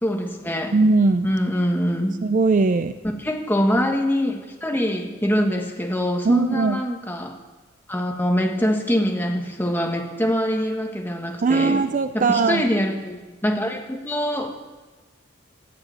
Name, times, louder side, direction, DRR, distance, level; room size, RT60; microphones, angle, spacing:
voice 1, 0.0-0.7 1.2-2.2 3.2-7.4 7.9-11.8 12.1-14.5, equal, 10° left, 2 dB, 1.4 m, -24 dB
voice 2, 0.7-1.3 2.2-2.9 6.3-6.8 11.4-12.6, right 3 dB, 40° right, 11 dB, 0.4 m, -19 dB
15.0 x 7.0 x 8.9 m, 1.2 s
head